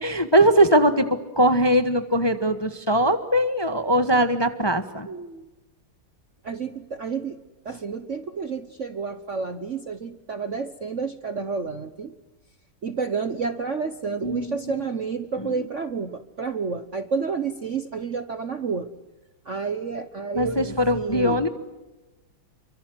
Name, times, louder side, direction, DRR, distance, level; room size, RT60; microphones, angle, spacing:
voice 1, 0.0-5.1 14.2-14.9 15.4-15.5 20.3-21.5, right 1 dB, 15° left, 9 dB, 1.1 m, -21 dB
voice 2, 5.1-5.5 6.4-12.1 12.8-18.9 19.4-21.4, right 5 dB, 45° right, 10 dB, 1.1 m, -30 dB
29.0 x 24.5 x 7.9 m, 1.1 s
omnidirectional pair, 2.4 m